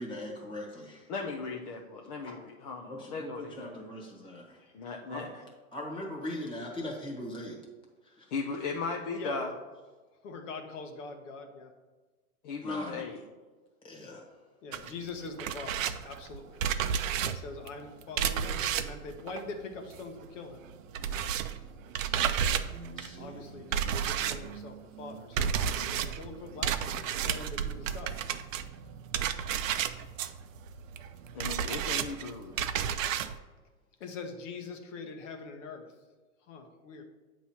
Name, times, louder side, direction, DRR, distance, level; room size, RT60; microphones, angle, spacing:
voice 1, 0.0-1.1 2.9-4.6 5.1-5.4 5.7-7.6 8.0-8.3 12.6-13.0 13.8-14.3 22.4-23.5, left 1 dB, 10° left, -1 dB, 1.2 m, -41 dB
voice 2, 1.1-3.9 4.7-5.3 8.3-9.5 12.4-13.2 31.3-32.7, left 4 dB, 30° left, 0 dB, 0.4 m, -37 dB
voice 3, 9.2-9.6 10.2-11.7 14.6-17.0 17.3-20.6 22.5-22.7 23.2-28.2 34.0-35.9 36.5-37.0, left 4 dB, 55° left, 4 dB, 1.0 m, -43 dB
sound 1, 14.7-20.2 20.5-33.4, right 8 dB, 60° right, 0.6 m, -32 dB
8.1 x 3.1 x 5.6 m, 1.3 s
hypercardioid pair, 135°, 44 cm